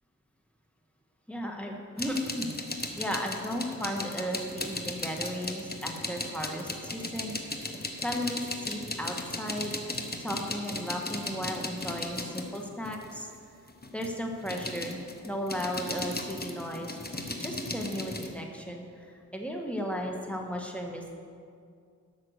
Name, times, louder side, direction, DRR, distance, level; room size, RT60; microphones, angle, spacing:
voice 1, 1.3-2.5 3.0-7.3 8.0-9.7 10.2-13.3 13.9-17.0 17.4-21.1, equal, 5° left, 1 dB, 1.5 m, -35 dB
sound 1, 2.0-13.2 13.7-18.3, left 2 dB, 30° left, 1.1 m, -36 dB
13.0 x 5.8 x 6.6 m, 2.3 s
wide cardioid pair, 55°, 32 cm